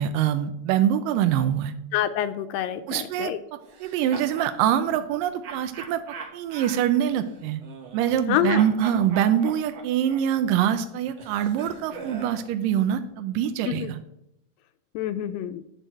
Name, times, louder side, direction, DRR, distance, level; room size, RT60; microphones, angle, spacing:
voice 1, 0.0-1.7 2.9-3.3 3.8-6.0 6.3-7.6 7.9-14.0, right 10 dB, 80° right, 9 dB, 2.1 m, -24 dB
voice 2, 1.9-3.4 8.3-8.6 13.6-13.9 15.0-15.6, left 11 dB, 80° left, 10 dB, 2.2 m, -26 dB
sound 1, 3.7-4.5 5.4-8.3 8.5-12.5, right 5 dB, 55° right, 2.1 m, -41 dB
10.0 x 4.5 x 7.6 m, 0.81 s
omnidirectional pair, 4.1 m